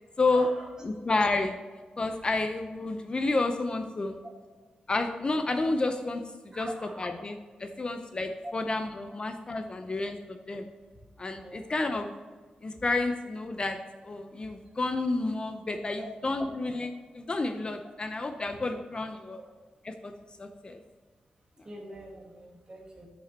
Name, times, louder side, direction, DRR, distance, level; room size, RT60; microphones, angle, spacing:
voice 1, 0.3-0.7 1.1-1.2 4.2-4.3 6.5-7.1 8.4-8.5 11.4-11.7 16.0-16.1 19.4-19.5 21.6-23.1, right 1 dB, 30° right, -3 dB, 2.3 m, -44 dB
voice 2, 0.8-1.6 2.0-4.2 4.9-6.2 6.6-6.7 7.0-10.2 10.5-10.7 11.2-12.1 12.6-13.8 14.0-19.4 19.9-20.0 20.4-20.8, left 3 dB, 35° left, 7 dB, 0.6 m, -30 dB
7.0 x 5.1 x 4.2 m, 1.4 s
cardioid pair, 75°, 3 cm